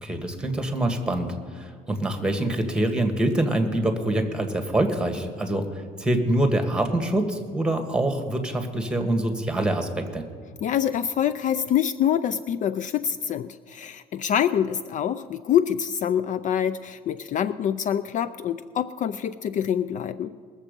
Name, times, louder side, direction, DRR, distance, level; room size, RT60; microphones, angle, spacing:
voice 1, 0.0-5.7 6.0-10.2, right 1 dB, 5° right, 5 dB, 1.5 m, -25 dB
voice 2, 10.6-20.3, left 9 dB, 50° left, 15 dB, 0.4 m, -25 dB
20.5 x 7.3 x 5.2 m, 2.1 s
cardioid pair, 110°, 17 cm